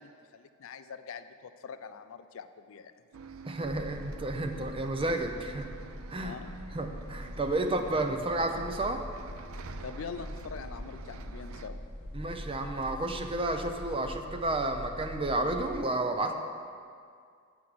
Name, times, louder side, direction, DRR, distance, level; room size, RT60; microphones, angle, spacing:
voice 1, 0.0-2.9 6.2-6.6 9.8-11.8, left 5 dB, 70° left, 11 dB, 0.4 m, -44 dB
Bus, 3.1-11.7, right 5 dB, 75° right, 0.5 m, -48 dB
voice 2, 3.4-5.7 6.1-6.4 6.7-9.0 12.1-16.3, right 2 dB, 25° right, 6 dB, 0.6 m, -31 dB
sound 1, 3.6-15.8, left 1 dB, 10° right, 2.3 m, -43 dB
8.3 x 5.9 x 7.6 m, 2.2 s
head